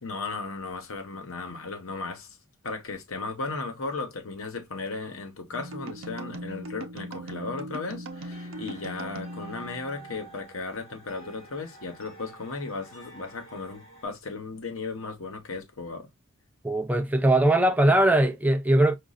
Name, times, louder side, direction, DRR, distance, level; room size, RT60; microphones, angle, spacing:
voice 1, 0.0-2.4 2.6-16.1, left 3 dB, 80° left, 1.0 m, -36 dB
sound 1, 5.5-10.4, right 1 dB, 70° right, 0.6 m, -39 dB
sound 2, 8.1-14.1, right 3 dB, 30° left, 2.5 m, -49 dB
voice 2, 16.6-18.9, right 1 dB, 10° right, 0.4 m, -20 dB
5.2 x 2.4 x 2.3 m
head